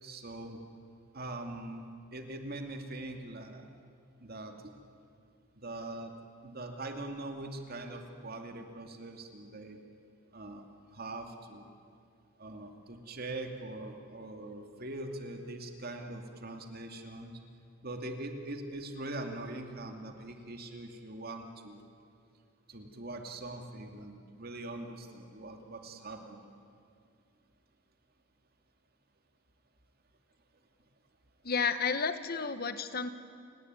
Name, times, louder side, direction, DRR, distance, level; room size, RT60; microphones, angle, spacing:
voice 1, 0.0-0.6 1.1-1.8 2.1-3.6 4.2-4.7 5.6-6.1 6.4-9.8 10.3-10.7 10.9-11.7 12.4-17.3 17.8-21.8 22.7-26.5, right 2 dB, 50° right, 4 dB, 2.5 m, -42 dB
voice 2, 31.4-33.1, left 5 dB, 50° left, 11 dB, 1.1 m, -31 dB
29.0 x 18.5 x 9.6 m, 2.4 s
head